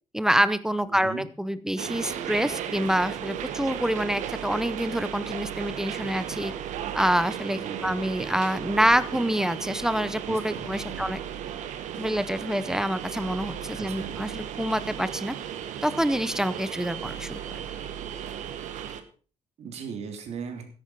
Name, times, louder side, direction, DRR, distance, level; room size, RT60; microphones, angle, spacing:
voice 1, 0.1-6.5 6.9-11.2 12.0-15.3 15.8-17.4, equal, 5° right, 14 dB, 0.6 m, -26 dB
voice 2, 0.9-1.2 7.5-7.9 10.2-11.1 13.7-14.2 19.6-20.7, right 6 dB, 60° right, 5 dB, 2.9 m, -38 dB
sound 1, 1.8-19.0, right 9 dB, 85° right, 1.4 m, -35 dB
13.5 x 11.0 x 4.6 m, 0.39 s
cardioid pair, 145°, 12 cm